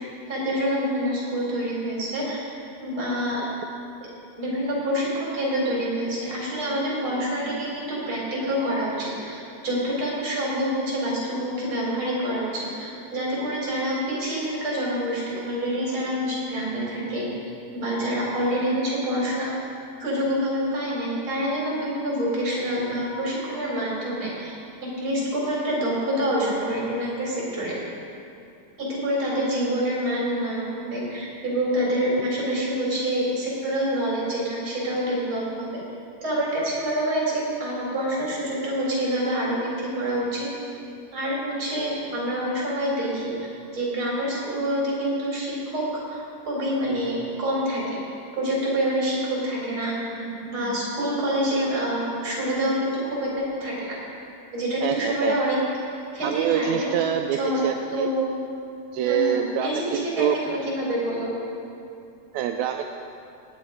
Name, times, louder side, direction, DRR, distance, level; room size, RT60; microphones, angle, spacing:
voice 1, 0.3-2.4 2.8-3.4 4.0-4.1 4.4-17.3 17.7-19.5 20.0-24.5 24.8-27.8 28.8-35.8 36.2-40.5 41.1-43.3 43.7-48.0 48.3-54.0 54.5-55.6 56.1-56.9 57.4-57.6 57.9-58.3 59.0-61.3, equal, 40° right, -5 dB, 4.6 m, -27 dB
voice 2, 54.8-55.4 56.2-58.1 58.9-60.4 62.3-62.9, right 9 dB, 80° right, 4 dB, 1.7 m, -25 dB
18.5 x 9.3 x 5.0 m, 2.6 s
omnidirectional pair, 3.5 m